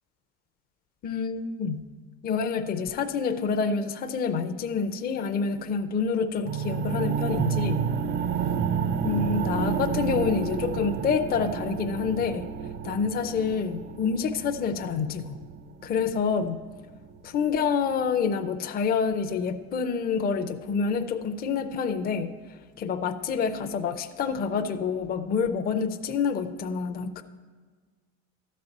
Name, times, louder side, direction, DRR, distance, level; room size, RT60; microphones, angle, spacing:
voice 1, 1.0-1.8 2.2-7.8 9.0-12.5 12.8-15.4 15.8-16.6 17.2-22.3 22.8-27.2, left 5 dB, 25° left, 7 dB, 0.5 m, -27 dB
sound 1, 6.4-16.4, right 7 dB, 35° right, 0.4 m, -30 dB
12.5 x 4.2 x 7.9 m, 1.4 s
cardioid pair, 135°, 34 cm